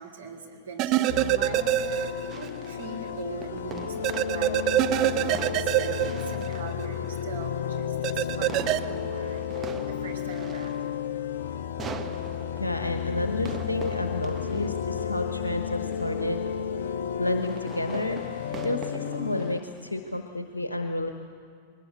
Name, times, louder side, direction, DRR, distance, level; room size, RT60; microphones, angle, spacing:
voice 1, 0.0-10.8, right 4 dB, 70° right, 1 dB, 3.0 m, -41 dB
sound 1, 0.8-2.5 2.8-2.9 4.0-6.9 8.0-8.8, right 15 dB, 40° right, 0.8 m, -25 dB
sound 2, 1.1-19.6, left 9 dB, 60° left, 0.5 m, -33 dB
sound 3, 2.3-20.2, right 6 dB, 20° right, 1.1 m, -44 dB
voice 2, 12.5-16.4 17.2-18.2 18.6-21.1, left 2 dB, 80° left, 5 dB, 1.2 m, -30 dB
21.0 x 20.0 x 8.2 m, 2.2 s
figure-of-eight pair, 90°, 0 cm